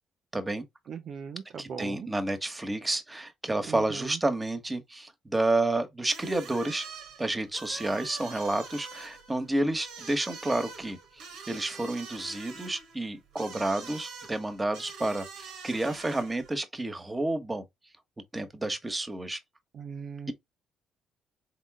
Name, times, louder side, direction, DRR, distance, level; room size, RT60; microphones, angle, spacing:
voice 1, 0.3-0.6 1.6-6.9 7.2-17.6 18.3-19.4, right 2 dB, 20° right, 1.4 m, -30 dB
voice 2, 0.9-2.1 3.7-4.1 19.7-20.3, right 6 dB, 60° right, 0.5 m, -39 dB
sound 1, 6.1-16.5, right 5 dB, 75° right, 1.4 m, -45 dB
3.9 x 3.8 x 3.6 m
hypercardioid pair, 55°, 0 cm